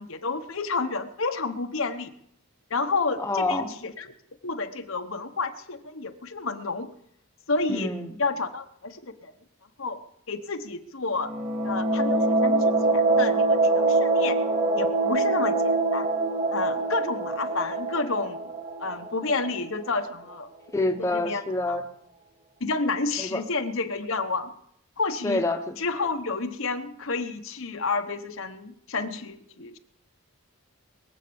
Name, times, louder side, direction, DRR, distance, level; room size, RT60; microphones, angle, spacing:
voice 1, 0.0-2.1 2.7-4.1 4.4-6.9 7.5-7.9 8.2-9.3 9.8-10.0 10.3-11.3 11.6-14.4 14.7-16.1 16.5-18.4 18.8-20.5 21.0-21.4 21.7-21.8 22.6-24.5 25.0-25.4 25.8-29.8, left 3 dB, 65° left, 7 dB, 1.1 m, -30 dB
voice 2, 3.2-3.7 7.7-8.1 20.7-21.8 23.2-23.4 25.2-25.8, left 2 dB, 15° left, 4 dB, 1.1 m, -27 dB
sound 1, 11.2-19.8, right 2 dB, 30° right, 2.8 m, -24 dB
22.0 x 8.1 x 7.0 m, 0.73 s
head